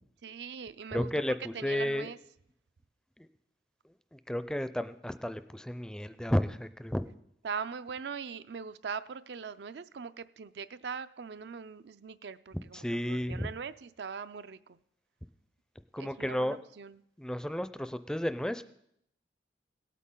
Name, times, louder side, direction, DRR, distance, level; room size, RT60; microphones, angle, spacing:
voice 1, 0.2-1.1 1.5-2.2 7.4-14.8 16.0-17.0, right 6 dB, 75° right, 14 dB, 0.4 m, -41 dB
voice 2, 0.9-2.1 3.2-3.3 4.1-7.1 12.7-13.5 15.9-16.6 17.2-18.6, equal, 5° left, 12 dB, 0.4 m, -32 dB
18.5 x 8.3 x 3.8 m, 0.74 s
head